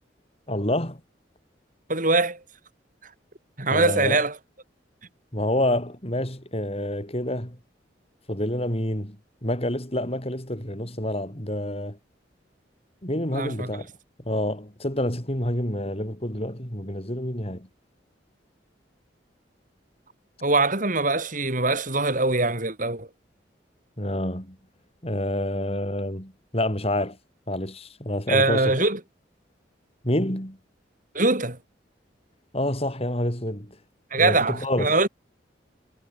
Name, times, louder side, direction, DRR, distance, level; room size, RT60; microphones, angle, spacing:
voice 1, 0.5-1.0 3.7-4.2 5.3-7.6 8.3-9.2 9.4-12.0 13.0-13.9 14.3-17.7 24.0-24.6 25.0-27.2 27.5-28.8 30.0-30.6 32.5-33.8 34.1-35.1, left 1 dB, 35° left, 7.5 m, -28 dB
voice 2, 1.9-2.4 3.6-4.4 13.3-13.7 20.4-23.1 28.3-29.0 31.1-31.6 34.1-35.1, right 3 dB, 45° right, 6.2 m, -22 dB
head